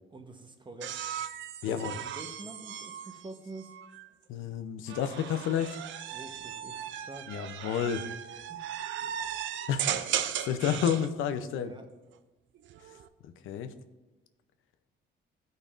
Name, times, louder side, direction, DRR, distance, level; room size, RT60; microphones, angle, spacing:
voice 1, 0.1-1.0 1.7-3.8 6.1-7.4 8.5-8.6 11.6-11.9, right 2 dB, 25° right, 6 dB, 0.9 m, -46 dB
sound 1, 0.8-4.1 4.9-11.1 12.6-13.1, right 10 dB, 75° right, 0.5 m, -37 dB
voice 2, 1.6-2.0 4.3-5.8 7.3-8.0 9.7-11.7 13.2-13.7, left 8 dB, 85° left, 9 dB, 0.6 m, -31 dB
13.0 x 5.2 x 2.5 m, 1.1 s
cardioid pair, 90°, 20 cm